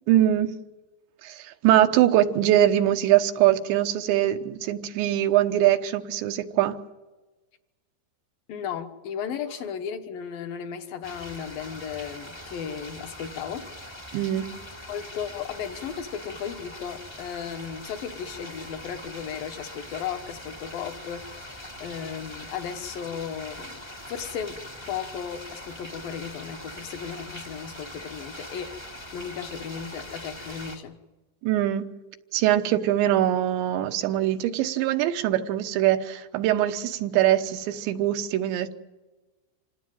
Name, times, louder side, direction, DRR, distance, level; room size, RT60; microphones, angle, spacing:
voice 1, 0.1-0.5 1.2-6.8 14.1-14.5 31.4-31.9 32.3-38.7, right 12 dB, 85° right, 7 dB, 3.3 m, -22 dB
voice 2, 8.5-13.7 14.9-28.8 29.1-31.0, left 7 dB, 65° left, 6 dB, 2.6 m, -35 dB
sound 1, 11.0-30.8, left 1 dB, 15° left, 0.8 m, -42 dB
27.0 x 18.0 x 9.1 m, 1.2 s
omnidirectional pair, 5.0 m